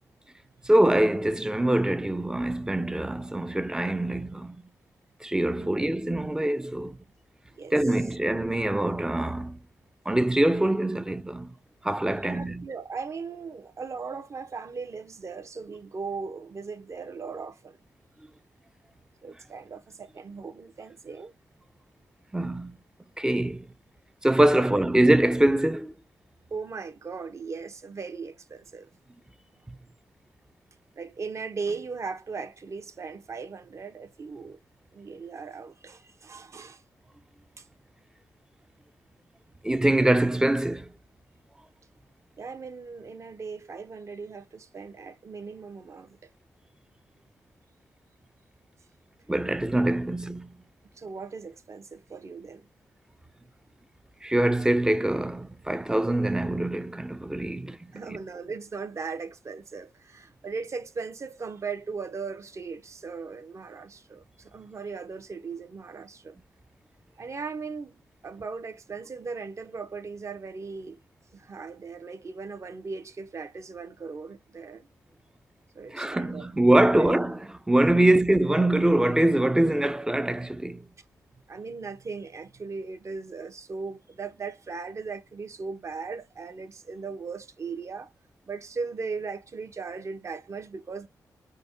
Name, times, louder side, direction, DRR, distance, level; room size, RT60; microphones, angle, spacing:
voice 1, 0.6-4.6 5.2-7.0 7.7-9.6 10.1-11.5 11.8-12.7 22.3-22.8 23.2-23.7 24.2-25.9 39.6-40.9 49.3-50.6 54.2-58.2 75.9-80.9, right 1 dB, 10° right, 0.3 m, -24 dB
voice 2, 12.2-17.8 19.2-21.3 24.6-24.7 26.5-28.9 31.0-34.6 34.9-36.8 37.6-37.7 42.4-46.3 51.0-52.7 57.9-66.4 67.2-71.0 71.3-74.9 75.7-76.5 76.9-77.1 81.5-88.1 88.5-91.1, right 4 dB, 45° right, 0.6 m, -38 dB
5.0 x 2.1 x 2.5 m
wide cardioid pair, 105°, 7 cm